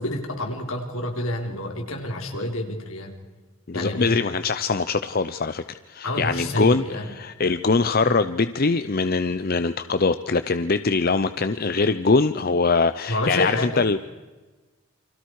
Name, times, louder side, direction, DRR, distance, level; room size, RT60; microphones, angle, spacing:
voice 1, 0.0-3.1 3.7-4.2 6.0-7.1 8.0-8.1 13.1-13.8, left 1 dB, 70° left, 3 dB, 3.9 m, -28 dB
voice 2, 3.7-6.8 7.2-14.0, left 4 dB, 45° left, 12 dB, 0.7 m, -22 dB
29.5 x 25.0 x 4.8 m, 1.2 s
head